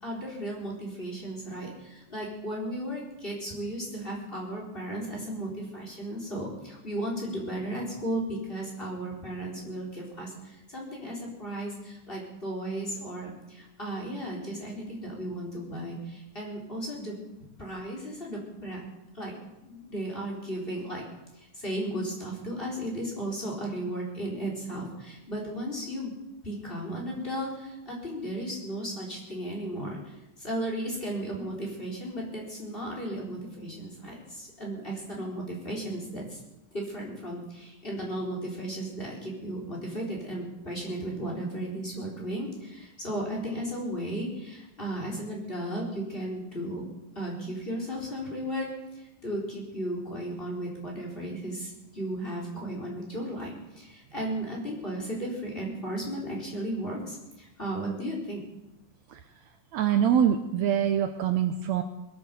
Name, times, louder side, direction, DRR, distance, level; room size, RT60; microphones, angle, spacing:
voice 1, 0.0-17.2 17.6-18.8 19.1-19.3 19.6-21.0 21.4-26.1 26.4-30.0 30.4-36.4 36.7-46.8 47.2-48.7 49.2-58.4, right 1 dB, 15° left, -3 dB, 4.0 m, -35 dB
voice 2, 59.7-61.8, right 9 dB, 75° right, 7 dB, 1.8 m, -24 dB
21.5 x 8.9 x 6.9 m, 0.95 s
omnidirectional pair, 3.6 m